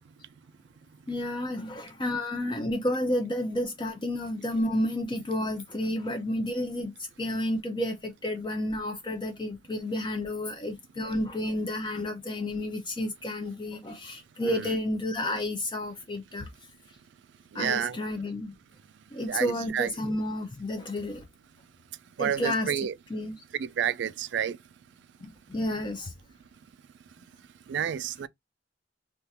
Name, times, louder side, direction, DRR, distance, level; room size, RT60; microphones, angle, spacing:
voice 1, 1.1-16.5 17.5-18.6 19.1-21.2 22.2-22.7 23.1-23.4 25.2-26.1, left 1 dB, 25° left, 0.5 m, -31 dB
voice 2, 14.4-14.8 17.5-18.0 19.3-19.9 22.2-22.9 23.5-24.6 27.7-28.3, right 9 dB, 70° right, 0.3 m, -30 dB
3.4 x 2.4 x 2.7 m
head